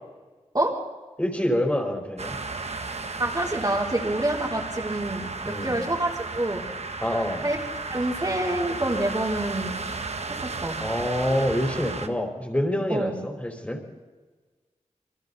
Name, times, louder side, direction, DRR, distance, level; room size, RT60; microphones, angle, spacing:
voice 1, 1.2-2.3 5.4-5.8 7.0-7.4 10.8-13.8, equal, 10° left, 1 dB, 4.7 m, -26 dB
sound 1, 2.2-12.1, right 3 dB, 60° right, 1.2 m, -34 dB
voice 2, 3.2-6.7 7.4-7.6 7.9-9.7 10.4-10.8 12.9-13.1, right 1 dB, 30° right, -3 dB, 4.0 m, -27 dB
28.0 x 23.0 x 4.3 m, 1.3 s
wide cardioid pair, 55°, 13 cm